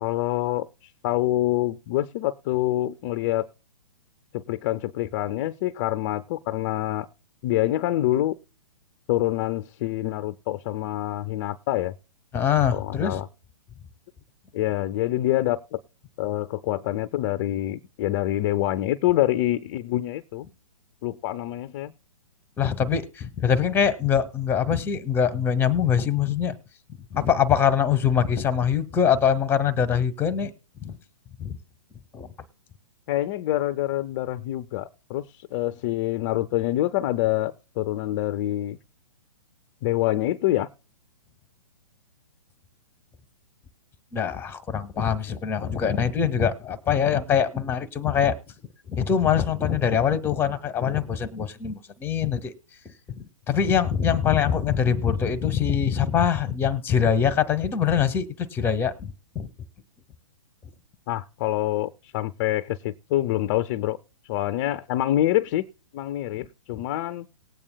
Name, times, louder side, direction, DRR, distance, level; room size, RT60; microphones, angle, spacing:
voice 1, 0.0-3.5 4.3-7.1 7.4-8.4 9.1-11.9 12.7-13.3 14.5-15.8 16.2-20.5 21.0-21.9 33.1-38.8 39.8-40.7 61.1-64.0 64.3-65.7 65.9-67.3, left 14 dB, 30° left, 12 dB, 0.4 m, -26 dB
voice 2, 12.3-13.2 22.6-26.6 27.1-30.5 30.8-31.0 31.4-31.6 32.1-32.3 44.1-48.3 48.9-52.5 52.8-59.5 66.4-66.5, left 8 dB, 15° left, 12 dB, 0.8 m, -23 dB
19.0 x 8.7 x 2.2 m, 0.35 s
hypercardioid pair, 130°, 17 cm